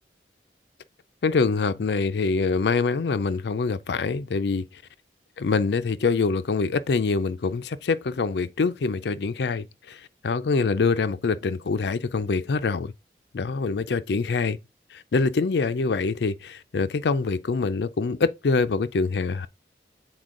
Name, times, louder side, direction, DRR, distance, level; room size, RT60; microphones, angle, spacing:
voice 1, 1.2-4.6 5.4-12.9 13.3-14.6 14.9-19.5, left 4 dB, 75° left, 0.5 m, -25 dB
7.9 x 4.3 x 3.8 m
head